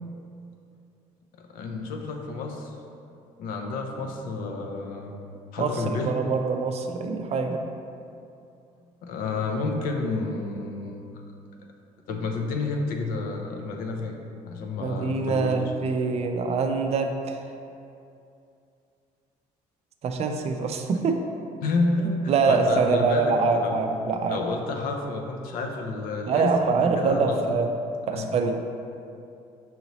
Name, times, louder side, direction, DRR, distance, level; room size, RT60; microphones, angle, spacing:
voice 1, 1.5-2.7 3.4-5.1 5.5-6.1 9.0-11.0 12.1-14.2 14.5-15.6 21.6-23.8 24.3-27.6 28.1-28.3, left 3 dB, 75° left, 3 dB, 0.5 m, -30 dB
voice 2, 5.6-7.6 14.8-17.5 20.0-21.2 22.3-24.4 26.3-27.7 28.1-28.6, right 4 dB, 45° right, 5 dB, 0.4 m, -24 dB
5.5 x 2.7 x 2.9 m, 2.6 s
supercardioid pair, 85°, 15 cm